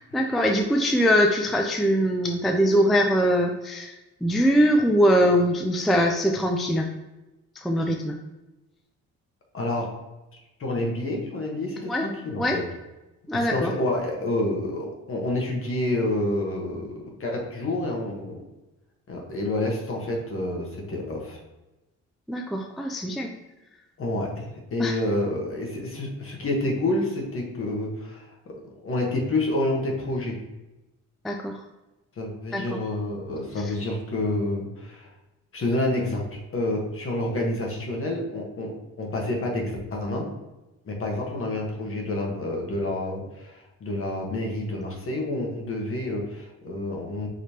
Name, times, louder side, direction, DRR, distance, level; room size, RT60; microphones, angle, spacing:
voice 1, 0.0-6.9 7.6-8.2 11.9-12.0 12.4-12.6 13.3-13.7 22.3-23.3 24.8-25.0 31.2-31.6 32.5-32.8 33.6-33.7, equal, ahead, 2 dB, 0.3 m, -22 dB
voice 2, 9.5-9.9 10.6-12.6 13.5-18.4 19.1-21.4 24.0-28.5 28.8-30.4 32.2-35.1 35.5-40.3 40.8-47.3, left 1 dB, 45° left, 1 dB, 1.1 m, -28 dB
5.0 x 3.1 x 2.8 m, 1.0 s
cardioid pair, 90°, 30 cm